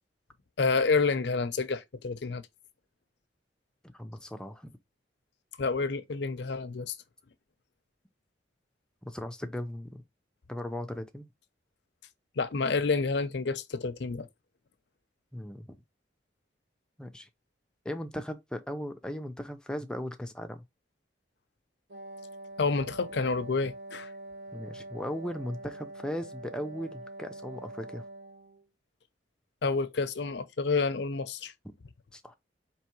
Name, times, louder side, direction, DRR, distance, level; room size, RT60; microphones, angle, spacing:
voice 1, 0.6-2.4 5.6-7.0 12.4-14.3 22.6-24.1 29.6-31.5, left 4 dB, 65° left, 0.6 m, -29 dB
voice 2, 3.9-4.7 9.1-10.0 10.5-11.3 15.3-15.7 17.0-17.3 17.8-20.6 24.5-28.0 32.1-32.3, equal, 5° left, 0.5 m, -37 dB
Wind instrument woodwind instrument, 21.9-28.7, right 2 dB, 60° right, 0.8 m, -45 dB
4.6 x 3.0 x 2.9 m
head